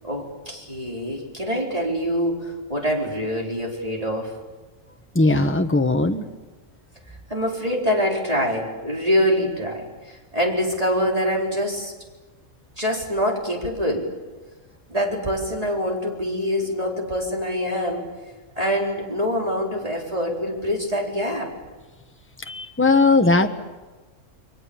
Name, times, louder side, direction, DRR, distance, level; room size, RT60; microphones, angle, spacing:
voice 1, 0.0-4.4 7.3-11.9 12.8-14.1 14.9-18.1 18.5-21.5, equal, 30° right, -1 dB, 4.4 m, -25 dB
voice 2, 5.1-6.2 22.5-23.5, left 3 dB, 10° left, 6 dB, 1.2 m, -18 dB
29.0 x 22.5 x 7.1 m, 1.2 s
omnidirectional pair, 1.3 m